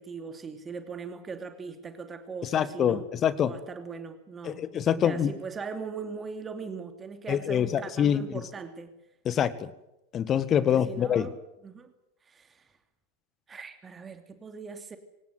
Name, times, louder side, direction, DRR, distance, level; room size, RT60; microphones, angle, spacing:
voice 1, 0.0-3.1 3.4-8.9 10.7-11.4 11.6-11.9 12.3-12.6 13.5-15.0, right 5 dB, 20° right, 8 dB, 2.8 m, -40 dB
voice 2, 2.4-3.5 4.4-5.3 7.3-8.2 9.3-9.7 10.1-11.3, left 9 dB, 25° left, 15 dB, 1.9 m, -25 dB
26.0 x 18.5 x 8.0 m, 0.90 s
figure-of-eight pair, 90°, 0 cm